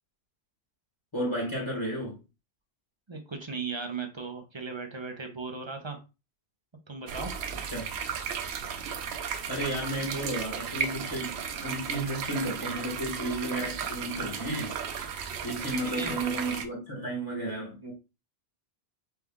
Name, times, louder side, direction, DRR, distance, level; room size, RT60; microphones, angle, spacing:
voice 1, 1.1-2.2 7.7-7.9 9.5-14.8 15.4-17.9, right 1 dB, 25° left, 1.3 m, -33 dB
voice 2, 3.1-6.0 6.9-7.3 15.7-16.2, right 4 dB, 30° right, 0.7 m, -37 dB
sound 1, 7.1-16.6, right 7 dB, 85° right, 0.9 m, -35 dB
4.5 x 2.5 x 3.5 m
omnidirectional pair, 1.1 m